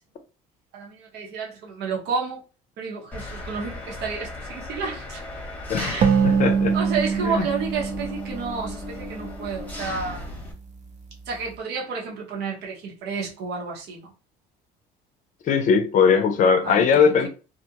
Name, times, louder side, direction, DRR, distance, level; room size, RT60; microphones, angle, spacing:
voice 1, 0.7-2.4 2.8-5.2 5.8-6.1 6.7-10.3 11.3-14.1 16.6-17.3, right 5 dB, 70° right, 0.9 m, -31 dB
Engine, 3.1-10.5, left 2 dB, 10° left, 0.8 m, -36 dB
sound 1, 6.0-9.5, right 6 dB, 45° right, 0.5 m, -24 dB
voice 2, 6.2-6.8 7.3-7.4 15.5-17.3, left 6 dB, 50° left, 0.5 m, -19 dB
2.4 x 2.2 x 2.8 m
cardioid pair, 115°, 17 cm